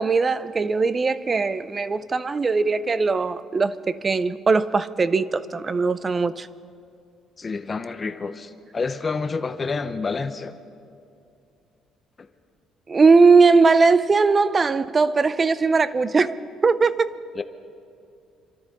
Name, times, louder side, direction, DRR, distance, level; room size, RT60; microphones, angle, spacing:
voice 1, 0.0-6.5 12.9-16.4 16.6-17.2, right 4 dB, 25° right, 0.5 m, -19 dB
voice 2, 7.4-10.6 12.2-12.3 17.4-17.5, left 4 dB, 25° left, 0.7 m, -28 dB
27.0 x 13.0 x 4.1 m
cardioid pair, 125°, 0 cm